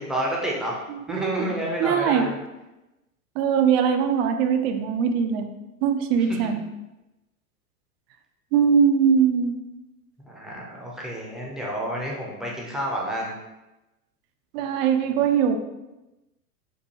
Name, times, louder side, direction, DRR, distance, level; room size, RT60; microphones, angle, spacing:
voice 1, 0.0-2.3 6.2-6.5 10.2-13.3, equal, ahead, -4 dB, 0.6 m, -30 dB
voice 2, 0.9-1.4 1.8-2.3 3.4-5.5 5.8-6.6 8.5-9.6 14.5-15.6, right 7 dB, 45° right, 6 dB, 0.5 m, -21 dB
4.5 x 2.2 x 2.9 m, 1.0 s
hypercardioid pair, 100°, 46 cm